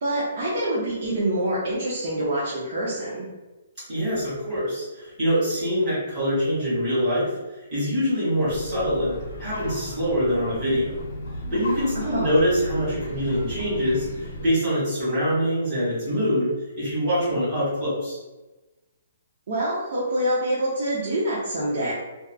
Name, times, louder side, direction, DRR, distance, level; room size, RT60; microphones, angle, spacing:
voice 1, 0.0-3.3 11.9-12.3 19.5-21.9, right 1 dB, 40° right, -7 dB, 0.5 m, -26 dB
voice 2, 3.9-10.9 11.5-18.2, equal, 15° right, -12 dB, 1.5 m, -24 dB
sound 1, 8.4-14.5, equal, 60° left, 0.6 m, -35 dB
2.7 x 2.3 x 2.3 m, 1.1 s
hypercardioid pair, 180°, 0 cm